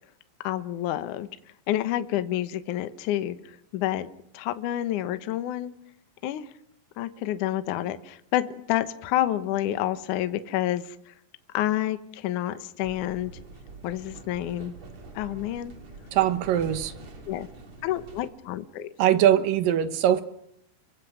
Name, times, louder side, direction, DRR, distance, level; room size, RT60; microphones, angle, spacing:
voice 1, 0.4-1.3 1.7-4.1 4.3-5.7 6.2-6.5 7.0-11.1 11.5-13.3 13.8-14.7 15.1-15.7 17.3-17.5 17.8-18.9, left 13 dB, 75° left, 11 dB, 1.9 m, -29 dB
sound 1, 12.8-18.3, right 2 dB, 40° right, 3.5 m, -45 dB
voice 2, 16.1-16.9 19.0-20.2, right 11 dB, 70° right, 11 dB, 2.3 m, -21 dB
30.0 x 24.0 x 6.3 m, 0.75 s
omnidirectional pair, 5.1 m